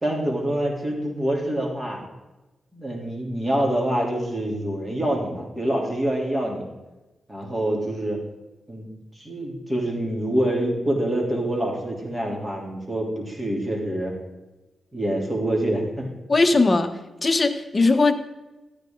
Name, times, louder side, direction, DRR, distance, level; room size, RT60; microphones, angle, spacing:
voice 1, 0.0-2.0 2.7-6.7 7.3-8.2 8.7-8.9 9.1-14.1 14.9-16.0, right 1 dB, 15° right, -1 dB, 3.2 m, -26 dB
voice 2, 16.3-16.9 17.2-18.1, left 3 dB, 30° left, 6 dB, 1.0 m, -19 dB
13.5 x 9.8 x 3.9 m, 1.1 s
cardioid pair, 80°, 0 cm